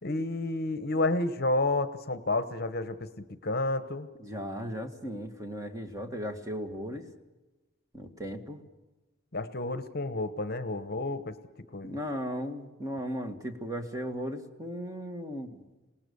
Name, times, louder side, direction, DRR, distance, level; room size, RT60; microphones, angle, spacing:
voice 1, 0.0-4.1 9.3-11.3 11.7-12.0, left 2 dB, 50° left, 12 dB, 1.1 m, -30 dB
voice 2, 4.2-7.0 7.9-8.6 11.8-15.6, equal, 15° right, 5 dB, 1.8 m, -36 dB
27.0 x 19.0 x 7.0 m, 1.1 s
head